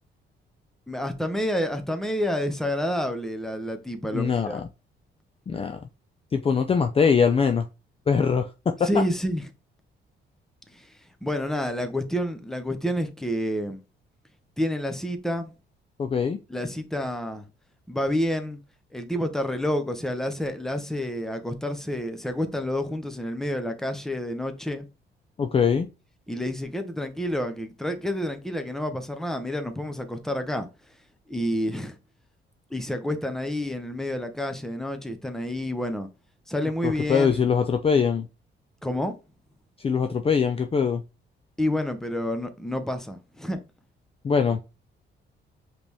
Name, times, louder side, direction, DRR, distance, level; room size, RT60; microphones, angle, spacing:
voice 1, 0.9-4.6 8.8-9.5 10.7-10.9 11.2-13.8 14.6-15.5 16.5-17.4 17.9-18.6 18.9-24.8 26.3-30.7 31.3-32.0 32.7-36.1 36.5-37.4 38.8-39.1 41.6-43.6, left 1 dB, ahead, 0.8 m, -29 dB
voice 2, 4.1-4.6 5.5-5.8 6.3-7.7 8.1-8.9 16.0-16.4 25.4-25.9 36.8-38.3 39.8-41.0 44.2-44.6, left 6 dB, 30° left, 0.4 m, -22 dB
5.0 x 3.1 x 3.4 m
cardioid pair, 90°, 20 cm